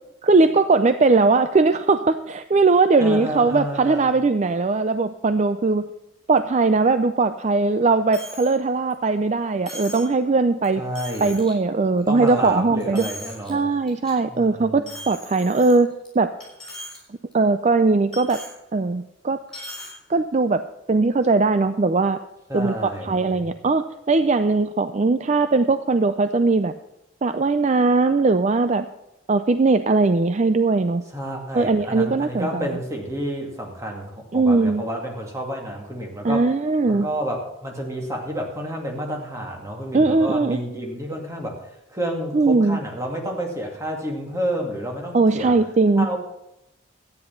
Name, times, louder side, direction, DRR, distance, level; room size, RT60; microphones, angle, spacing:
voice 1, 0.2-5.9 6.3-10.8 11.2-13.1 13.5-16.3 17.3-18.4 18.7-19.4 20.1-20.6 20.9-22.2 22.5-26.7 27.2-28.9 29.3-31.0 31.5-32.7 34.3-34.9 36.2-37.1 39.9-40.6 42.3-42.8 45.1-46.1, right 3 dB, 35° right, 10 dB, 0.4 m, -20 dB
voice 2, 3.0-4.1 10.8-11.3 12.1-13.7 14.3-14.9 22.5-23.4 31.1-36.5 36.9-45.5 46.0-46.2, equal, 15° right, 0 dB, 2.3 m, -30 dB
Coin (dropping), 8.1-8.5 8.9-9.0 9.7-10.1 10.6-10.7 11.0-11.5 12.0-12.5 12.8-13.5 13.9-14.1 14.9-16.1 16.4-17.0 17.3-17.4 18.1-18.5 19.5-19.9, equal, 5° left, 6.2 m, -38 dB
12.5 x 9.7 x 5.8 m, 0.89 s
head